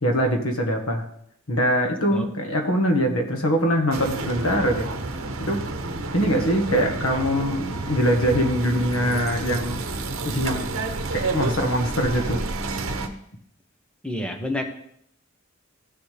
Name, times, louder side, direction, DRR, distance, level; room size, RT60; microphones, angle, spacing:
voice 1, 0.0-1.0 1.5-4.9 5.4-5.6 6.1-9.9 10.2-10.7 11.1-12.4, equal, 90° left, 3 dB, 1.6 m, -23 dB
sound 1, 3.9-13.1, right 3 dB, 70° right, 1.0 m, -30 dB
voice 2, 14.0-14.6, left 1 dB, 5° left, 4 dB, 1.1 m, -28 dB
15.5 x 7.0 x 3.5 m, 0.71 s
head